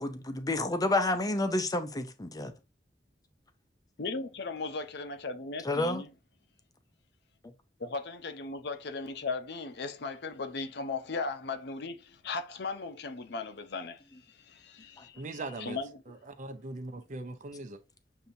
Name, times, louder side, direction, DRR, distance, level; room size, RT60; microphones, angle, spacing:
voice 1, 0.0-2.5 5.6-6.0, left 2 dB, 20° left, 0.6 m, -29 dB
voice 2, 4.0-6.1 7.8-14.0 14.3-16.0, left 3 dB, 65° left, 0.7 m, -37 dB
voice 3, 15.2-15.8 16.1-17.8, right 2 dB, 45° right, 0.6 m, -40 dB
6.8 x 2.7 x 2.6 m
head